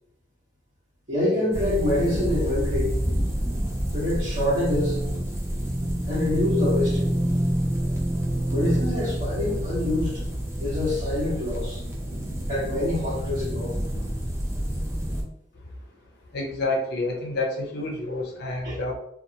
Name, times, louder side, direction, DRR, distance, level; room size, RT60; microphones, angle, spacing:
voice 1, 1.1-3.0 3.9-5.0 6.1-7.1 8.5-10.1 10.6-11.8 12.5-13.8 18.6-18.8, left 1 dB, 50° right, -11 dB, 1.1 m, -26 dB
sound 1, 1.5-15.2, equal, 15° right, 0.5 m, -27 dB
voice 2, 16.3-18.9, left 2 dB, 60° left, -1 dB, 0.6 m, -28 dB
2.6 x 2.3 x 2.8 m, 0.71 s
head